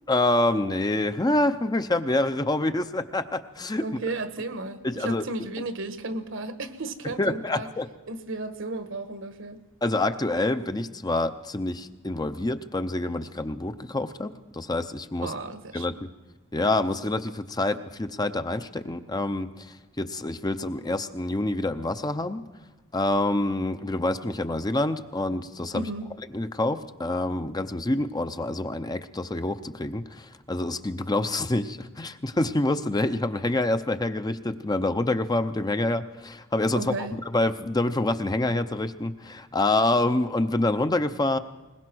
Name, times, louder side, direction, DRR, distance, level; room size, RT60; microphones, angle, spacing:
voice 1, 0.1-3.8 4.8-5.2 7.2-7.9 9.8-15.4 15.7-15.9 16.5-22.4 22.9-25.9 26.3-41.4, left 2 dB, 20° left, 9 dB, 0.6 m, -27 dB
voice 2, 3.8-7.7 8.1-9.6 15.2-15.8 25.7-26.1 36.7-37.2, right 2 dB, 65° right, 10 dB, 1.4 m, -34 dB
21.0 x 20.5 x 6.1 m, 1.2 s
head